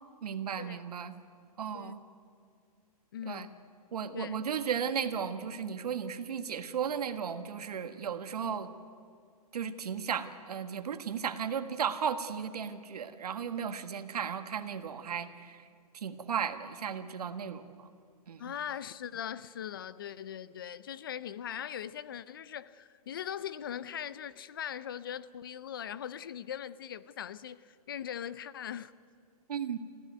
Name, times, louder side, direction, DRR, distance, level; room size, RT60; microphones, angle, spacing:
voice 1, 0.2-1.2 1.6-2.0 3.2-3.5 3.9-8.7 9.5-15.6 15.9-17.9 18.3-18.4 29.5-29.8, right 7 dB, 80° right, 1.6 m, -35 dB
voice 2, 3.1-3.6 4.1-4.4 18.4-28.9, left 9 dB, 35° left, 0.5 m, -40 dB
26.0 x 15.0 x 9.4 m
hypercardioid pair, 175°, 20 cm